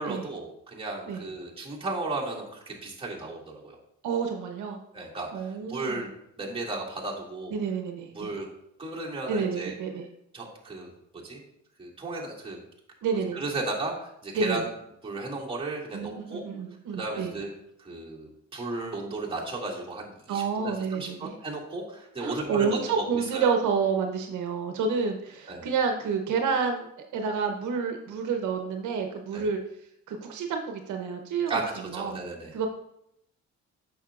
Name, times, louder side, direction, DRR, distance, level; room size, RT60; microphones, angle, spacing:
voice 1, 0.0-3.8 4.9-6.1 6.4-7.6 8.1-8.5 8.8-9.7 10.3-10.9 11.2-11.4 11.8-12.6 13.3-14.7 15.0-16.4 16.9-23.5 25.5-25.7 29.3-29.5 31.5-32.5, right 2 dB, 20° right, -4 dB, 2.3 m, -34 dB
voice 2, 4.0-4.8 5.3-6.0 7.5-8.3 9.3-10.1 13.0-13.4 14.3-14.6 15.9-17.3 20.3-21.4 22.2-26.9 27.1-29.6 30.1-31.6 31.9-32.2 32.5-32.7, right 5 dB, 80° right, 4 dB, 0.9 m, -29 dB
8.6 x 6.5 x 2.4 m, 0.76 s
cardioid pair, 90°, 30 cm